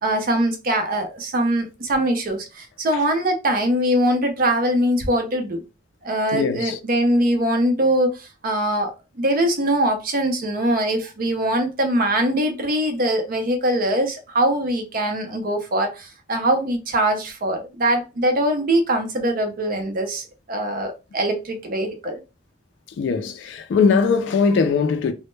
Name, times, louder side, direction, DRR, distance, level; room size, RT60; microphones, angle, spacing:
voice 1, 0.0-5.6 6.0-22.2, right 1 dB, 45° right, 0.5 m, -22 dB
voice 2, 6.3-6.8 23.0-25.1, left 5 dB, 70° left, 0.3 m, -20 dB
2.1 x 2.0 x 3.0 m
head